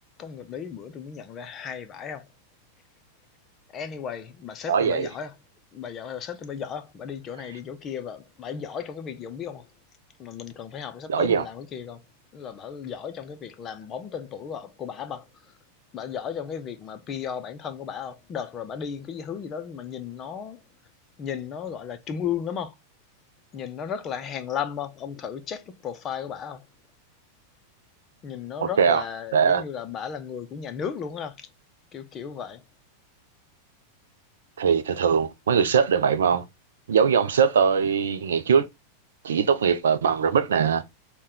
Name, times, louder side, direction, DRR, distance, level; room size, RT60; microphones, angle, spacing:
voice 1, 0.2-2.2 3.7-5.3 5.7-9.7 10.2-12.0 12.3-15.2 15.9-20.6 21.2-22.7 23.5-26.6 28.2-31.3 31.9-32.6, left 7 dB, 30° left, 0.5 m, -35 dB
voice 2, 4.7-5.1 11.1-11.4 28.6-29.0 29.3-29.6 34.6-36.4 36.9-38.7 39.2-40.8, right 6 dB, 65° right, 0.4 m, -21 dB
4.1 x 2.2 x 3.7 m
figure-of-eight pair, 90°, 0 cm